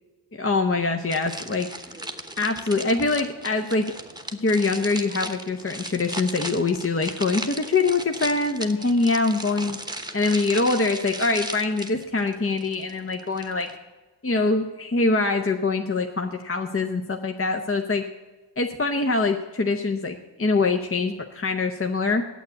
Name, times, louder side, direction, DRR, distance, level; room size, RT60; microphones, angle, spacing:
voice 1, 0.4-1.7 2.4-3.9 4.4-9.8 10.1-13.7 14.2-18.0 18.6-22.2, left 3 dB, 30° left, 4 dB, 0.8 m, -24 dB
sound 1, 1.1-13.8, right 1 dB, 10° right, 1.0 m, -37 dB
9.3 x 8.1 x 8.3 m, 1.3 s
wide cardioid pair, 80°, 44 cm